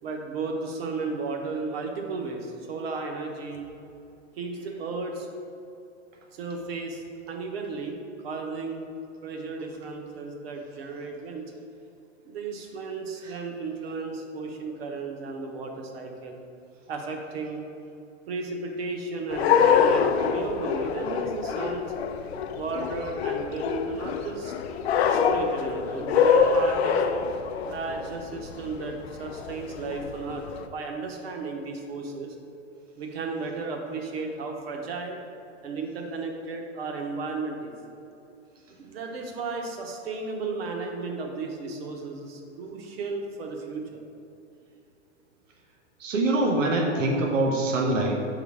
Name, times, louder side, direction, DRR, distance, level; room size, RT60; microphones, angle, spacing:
voice 1, 0.0-3.7 4.4-5.3 6.3-8.9 9.2-11.5 12.2-16.4 16.9-17.6 18.3-21.9 22.5-24.5 24.9-27.0 27.6-32.4 33.0-35.2 35.6-37.7 38.8-44.0, right 3 dB, 55° right, 2 dB, 1.1 m, -34 dB
sound 1, 19.3-30.6, left 7 dB, 60° left, 0.5 m, -25 dB
voice 2, 46.0-48.3, right 2 dB, 90° right, 0 dB, 1.1 m, -24 dB
6.6 x 3.9 x 4.8 m, 2.7 s
supercardioid pair, 165°, 37 cm